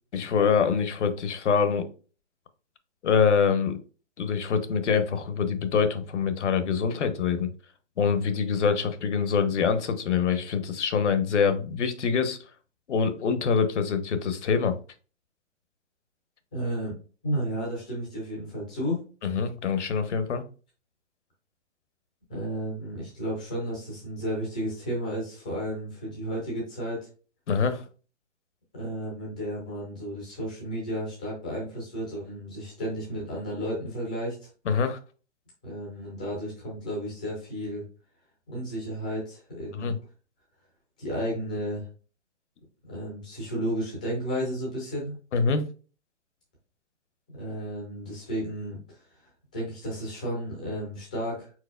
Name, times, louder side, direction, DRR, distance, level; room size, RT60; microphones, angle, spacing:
voice 1, 0.1-1.9 3.0-3.8 4.2-7.5 8.0-12.4 12.9-14.8 19.2-20.4 27.5-27.8 34.7-35.0 39.7-39.9 45.3-45.6, left 6 dB, 70° left, 10 dB, 0.9 m, -25 dB
voice 2, 16.5-16.9 17.2-19.0 22.3-27.0 28.7-34.5 35.6-37.8 38.5-39.9 41.0-41.9 42.9-45.1 47.3-49.2 49.5-51.5, equal, 5° left, -4 dB, 0.5 m, -33 dB
4.7 x 4.4 x 2.3 m, 0.37 s
hypercardioid pair, 170°, 37 cm